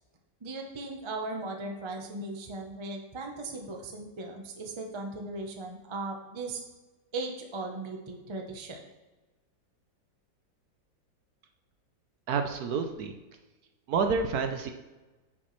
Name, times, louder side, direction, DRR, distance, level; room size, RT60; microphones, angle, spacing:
voice 1, 0.4-6.6 7.1-8.8, right 2 dB, 30° right, 2 dB, 0.5 m, -37 dB
voice 2, 12.3-13.1 13.9-14.7, right 5 dB, 65° right, 5 dB, 1.1 m, -28 dB
9.8 x 6.1 x 3.2 m, 1.1 s
omnidirectional pair, 2.0 m